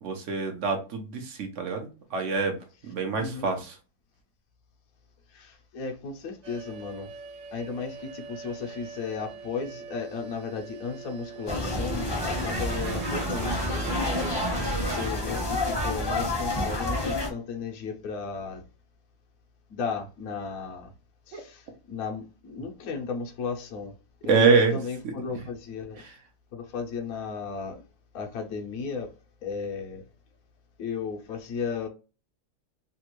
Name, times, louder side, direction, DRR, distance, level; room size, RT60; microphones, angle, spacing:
voice 1, 0.0-2.6 2.9-3.6 21.3-21.4 24.3-24.8, right 4 dB, 55° right, 0.9 m, -25 dB
voice 2, 2.8-3.5 5.3-7.1 7.5-14.4 14.8-18.6 19.7-20.9 21.3-23.9 24.2-26.0 26.5-27.8 28.1-29.1 29.4-30.1 30.8-31.9, left 5 dB, 65° left, 1.0 m, -35 dB
sound 1, 6.4-15.1, right 5 dB, 80° right, 1.4 m, -40 dB
sound 2, 11.5-17.3, left 1 dB, 20° left, 0.7 m, -29 dB
3.4 x 2.4 x 3.0 m
omnidirectional pair, 2.0 m